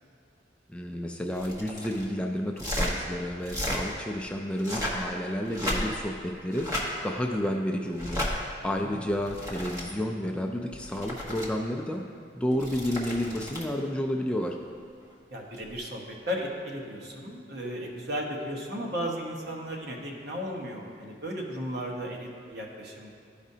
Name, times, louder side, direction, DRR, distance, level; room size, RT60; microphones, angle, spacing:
voice 1, 0.7-8.2 8.6-12.0 12.3-14.6, equal, 5° left, 2 dB, 0.3 m, -31 dB
sound 1, 1.3-2.1 2.5-2.9 3.4-3.8 4.5-5.1 5.5-6.1 6.5-6.9 7.9-8.3 9.1-9.8 10.7-11.5 12.5-13.7 15.6-15.7, left 1 dB, 20° right, 1.2 m, -33 dB
voice 2, 8.6-9.0 15.3-23.1, equal, 60° right, -1 dB, 1.1 m, -35 dB
13.0 x 5.0 x 2.7 m, 2.3 s
head